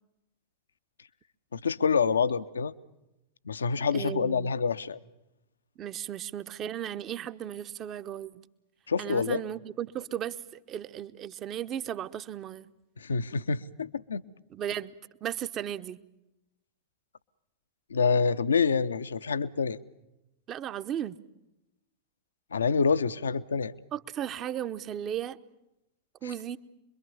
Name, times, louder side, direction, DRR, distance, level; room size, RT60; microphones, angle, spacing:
voice 1, 1.5-2.7 3.5-5.0 8.9-9.4 13.0-14.2 17.9-19.8 22.5-23.7, left 5 dB, 70° left, 14 dB, 0.8 m, -27 dB
voice 2, 3.9-4.5 5.8-8.4 9.0-12.7 14.5-14.9 15.2-16.0 20.5-21.2 23.9-25.4 26.2-26.6, right 10 dB, 30° right, 13 dB, 0.9 m, -35 dB
26.0 x 22.5 x 7.1 m, 0.93 s
figure-of-eight pair, 90°, 0 cm